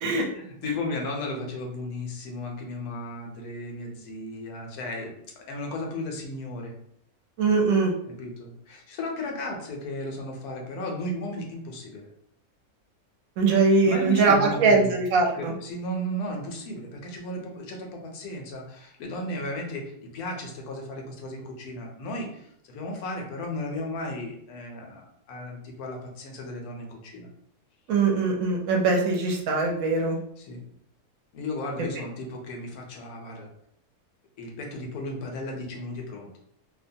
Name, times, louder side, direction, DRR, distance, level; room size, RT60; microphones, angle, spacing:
voice 1, 0.0-5.1 5.5-6.7 8.0-12.1 13.8-14.9 15.3-27.3 30.4-30.6 31.3-33.5 34.4-36.3, left 1 dB, 80° left, 1 dB, 1.1 m, -35 dB
voice 2, 7.4-7.9 13.4-15.5 27.9-30.2, right 4 dB, 70° right, 0 dB, 1.0 m, -22 dB
2.7 x 2.1 x 2.6 m, 0.70 s
omnidirectional pair, 1.6 m